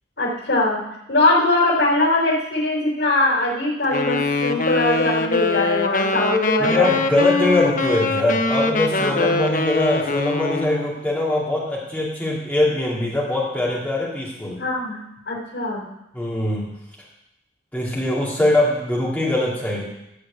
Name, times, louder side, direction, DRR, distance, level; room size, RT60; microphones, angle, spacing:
voice 1, 0.2-0.8 1.1-6.9 9.0-9.4 14.6-15.0 15.3-15.9, left 2 dB, 80° left, -7 dB, 4.0 m, -21 dB
Wind instrument woodwind instrument, 3.9-10.9, left 3 dB, 45° left, 0.8 m, -23 dB
voice 2, 6.6-14.6 16.1-16.7 17.7-19.8, left 1 dB, 10° left, -6 dB, 2.5 m, -22 dB
14.5 x 4.8 x 8.5 m, 0.87 s
head